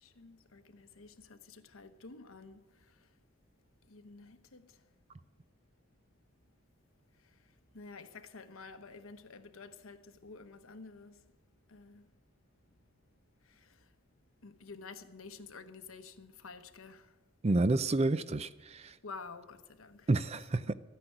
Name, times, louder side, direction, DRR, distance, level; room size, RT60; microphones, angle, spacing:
voice 1, 0.0-2.6 3.9-4.6 7.7-11.1 11.7-12.0 14.4-17.1 19.0-20.1 20.6-20.7, left 4 dB, 85° left, 1.1 m, -50 dB
voice 2, 17.4-18.9 20.1-20.7, right 2 dB, 30° right, 0.5 m, -29 dB
13.0 x 9.8 x 9.2 m
head